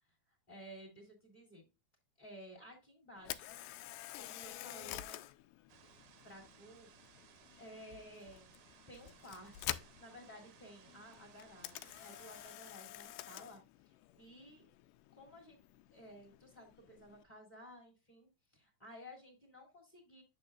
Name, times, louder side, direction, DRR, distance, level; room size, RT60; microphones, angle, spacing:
voice 1, 0.5-1.7 2.2-3.7 4.1-5.2 6.2-7.3 7.6-8.5 8.9-14.7 15.1-15.6 15.9-20.2, equal, 15° left, 3 dB, 2.2 m, -55 dB
Camera, 3.2-17.2, left 15 dB, 80° left, 2.0 m, -49 dB
sound 1, 5.7-12.6, right 9 dB, 90° right, 2.8 m, -63 dB
8.8 x 6.7 x 2.4 m, 0.26 s
omnidirectional pair, 3.9 m